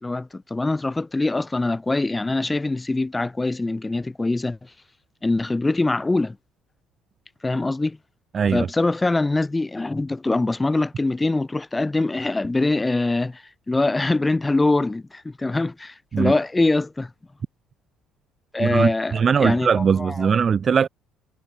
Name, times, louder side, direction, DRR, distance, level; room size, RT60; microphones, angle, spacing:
voice 1, 0.0-4.6 5.2-6.4 7.4-8.0 8.5-17.1 18.5-20.3, left 2 dB, 20° left, 4.0 m, -23 dB
voice 2, 8.3-8.7 16.1-16.3 18.6-20.9, right 6 dB, 45° right, 2.4 m, -20 dB
hypercardioid pair, 55°, 0 cm